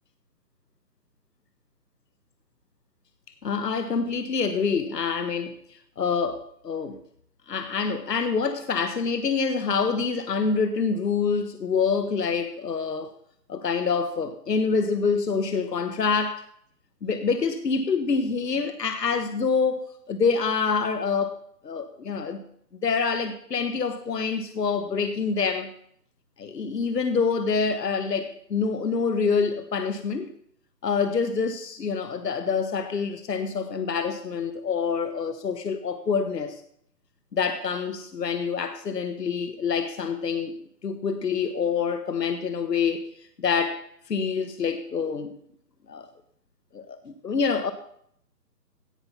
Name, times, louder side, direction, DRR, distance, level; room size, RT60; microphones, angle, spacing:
voice 1, 3.4-7.0 7.5-13.1 13.5-16.4 17.0-21.4 21.6-22.4 22.8-25.7 26.4-30.3 30.8-36.6 37.3-40.6 40.8-43.1 43.4-45.4 45.9-46.1 46.7-47.7, left 5 dB, 75° left, 1.3 m, -26 dB
17.0 x 5.9 x 5.6 m
hypercardioid pair, 160°, 49 cm